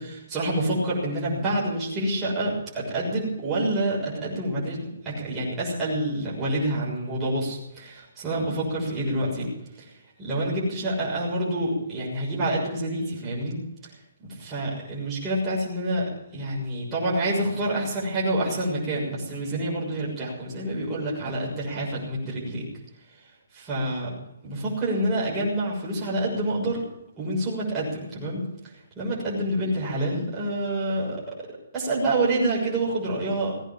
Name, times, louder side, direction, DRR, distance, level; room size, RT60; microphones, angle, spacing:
voice 1, 0.0-9.5 9.8-9.9 10.2-13.6 14.4-22.6 23.5-24.1 24.4-26.8 27.2-28.4 28.9-31.2 31.7-33.5, right 1 dB, 15° right, -7 dB, 6.6 m, -27 dB
18.0 x 10.0 x 7.4 m, 0.83 s
hypercardioid pair, 165°, 0 cm